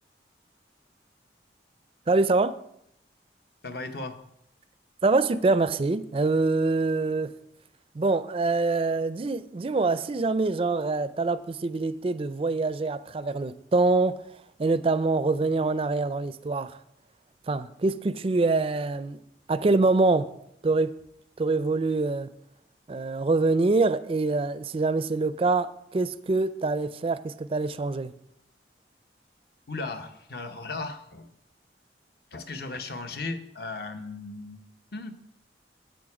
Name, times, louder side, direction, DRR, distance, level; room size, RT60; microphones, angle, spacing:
voice 1, 2.1-2.6 5.0-7.3 7.9-14.2 14.6-16.8 17.5-19.2 19.5-20.3 20.6-20.9 21.4-22.3 22.9-28.1, right 3 dB, 30° right, 14 dB, 0.4 m, -25 dB
voice 2, 3.6-4.2 29.7-31.3 32.3-34.6 34.9-35.1, left 3 dB, 60° left, 7 dB, 0.9 m, -36 dB
9.1 x 8.1 x 4.9 m, 0.77 s
head